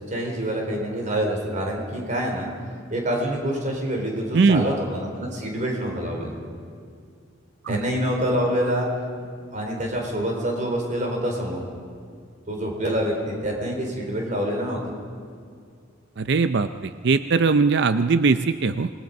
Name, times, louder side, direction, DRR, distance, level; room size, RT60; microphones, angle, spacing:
voice 1, 0.1-2.5 2.9-6.4 7.7-8.9 9.5-11.6 12.5-14.8, equal, 40° right, 0 dB, 4.1 m, -26 dB
voice 2, 4.3-4.7 7.6-7.8 16.2-18.9, right 4 dB, 60° right, 11 dB, 0.5 m, -20 dB
26.5 x 20.0 x 5.4 m, 2.2 s
head